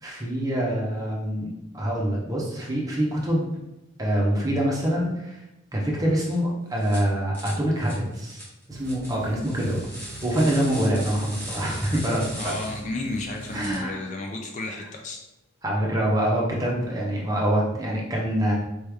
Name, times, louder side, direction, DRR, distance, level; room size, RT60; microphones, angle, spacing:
voice 1, 0.0-3.5 4.0-5.4 5.7-9.8 10.2-12.6 13.5-14.0 15.6-18.5, right 1 dB, 15° right, -4 dB, 0.9 m, -25 dB
sound 1, 6.2-6.3 6.8-7.0 7.3-13.8, equal, 10° left, 1.3 m, -40 dB
sound 2, 8.7-13.9, right 2 dB, 50° right, 0.4 m, -42 dB
voice 2, 12.4-15.2, left 2 dB, 35° left, 2 dB, 0.4 m, -32 dB
4.2 x 3.2 x 3.5 m, 0.94 s
head